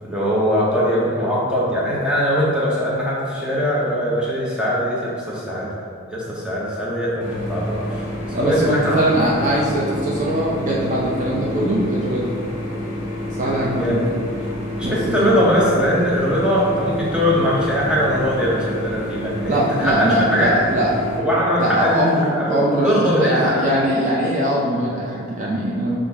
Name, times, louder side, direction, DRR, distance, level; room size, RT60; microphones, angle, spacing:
voice 1, 0.0-5.9 6.1-8.0 8.4-9.0 13.7-14.0 14.7-20.5 21.2-23.7, equal, 5° right, -7 dB, 0.7 m, -21 dB
sound 1, 7.2-21.2, equal, 35° left, 1.1 m, -29 dB
voice 2, 8.3-12.3 13.4-14.1 14.8-15.3 19.5-20.9 21.6-26.0, right 1 dB, 35° right, -4 dB, 0.4 m, -21 dB
5.6 x 2.5 x 3.5 m, 2.2 s
head